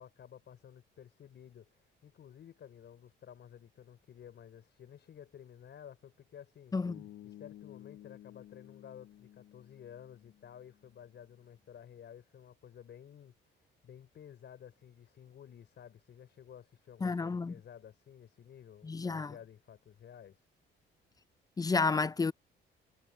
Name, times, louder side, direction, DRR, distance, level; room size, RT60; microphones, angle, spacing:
voice 1, 0.0-6.8 7.2-20.5, left 9 dB, 60° left, 5.4 m, -53 dB
Bass guitar, 6.9-10.9, left 13 dB, 80° left, 0.8 m, -53 dB
voice 2, 17.0-17.5 18.8-19.3 21.6-22.3, left 4 dB, 20° left, 0.4 m, -31 dB
cardioid pair, 90°, 20 cm